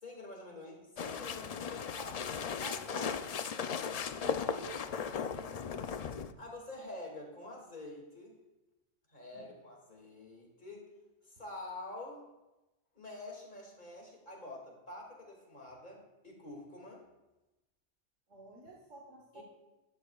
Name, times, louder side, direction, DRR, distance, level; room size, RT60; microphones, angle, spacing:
voice 1, 0.0-3.9 6.4-8.4 9.1-10.9 11.2-12.2 12.9-17.0 19.3-19.4, left 2 dB, 40° left, -1 dB, 2.4 m, -47 dB
sound 1, 1.0-6.3, left 6 dB, 85° left, 0.3 m, -37 dB
voice 2, 4.2-4.9 9.3-9.5 18.3-19.4, right 3 dB, 75° right, -1 dB, 1.6 m, -52 dB
12.5 x 11.0 x 2.3 m, 1.0 s
omnidirectional pair, 1.3 m